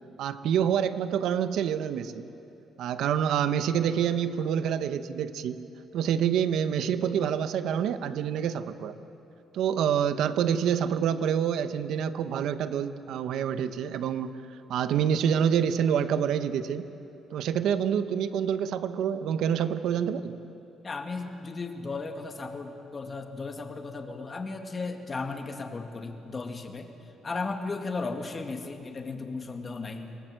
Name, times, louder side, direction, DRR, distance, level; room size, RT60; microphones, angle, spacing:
voice 1, 0.2-2.3 2.8-5.6 5.9-9.0 9.5-14.3 14.7-16.9 17.3-20.3, right 8 dB, 70° right, 11 dB, 1.1 m, -27 dB
voice 2, 20.8-26.9 27.2-30.1, left 3 dB, 25° left, 5 dB, 2.0 m, -35 dB
26.5 x 19.0 x 7.7 m, 2.8 s
cardioid pair, 135°, 0 cm